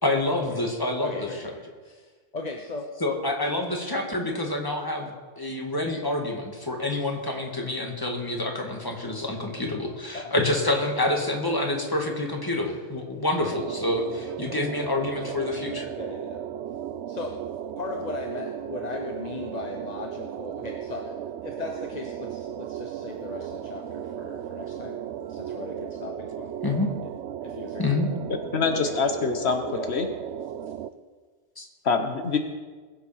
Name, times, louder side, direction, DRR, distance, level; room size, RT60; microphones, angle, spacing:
voice 1, 0.0-1.1 3.0-15.9 26.6-26.9 27.8-28.1 31.6-31.7, left 2 dB, 20° left, 2 dB, 1.8 m, -27 dB
voice 2, 1.0-2.9 9.9-10.3 12.6-12.8 16.0-16.4 17.1-17.3 17.8-21.1 21.4-25.0 25.3-26.5 27.4-27.9 29.7-29.9 30.7-30.8, left 3 dB, 40° left, 3 dB, 1.0 m, -37 dB
sound 1, 13.5-30.9, right 10 dB, 80° right, 0.9 m, -36 dB
voice 3, 28.5-29.6 29.9-30.1 31.8-32.4, left 5 dB, 70° left, 6 dB, 1.2 m, -24 dB
21.0 x 7.2 x 5.7 m, 1.4 s
omnidirectional pair, 1.2 m